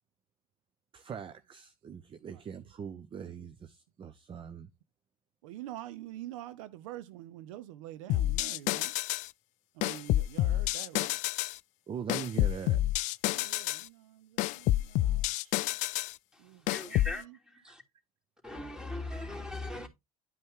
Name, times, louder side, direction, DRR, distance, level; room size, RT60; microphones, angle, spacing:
voice 1, 0.9-4.7 11.9-12.8 17.7-17.8, right 7 dB, 30° right, 0.8 m, -41 dB
voice 2, 2.2-2.5 5.4-8.9 9.7-11.1 13.3-15.7 16.4-17.4, right 14 dB, 60° right, 0.7 m, -46 dB
sound 1, 8.1-9.3 9.8-11.6 12.1-13.9 14.4-16.1 16.7-17.2, left 15 dB, 45° left, 0.4 m, -29 dB
voice 3, 16.3-17.8 18.4-19.9, left 2 dB, 5° right, 2.9 m, -40 dB
11.0 x 5.3 x 3.6 m
figure-of-eight pair, 65°, 18 cm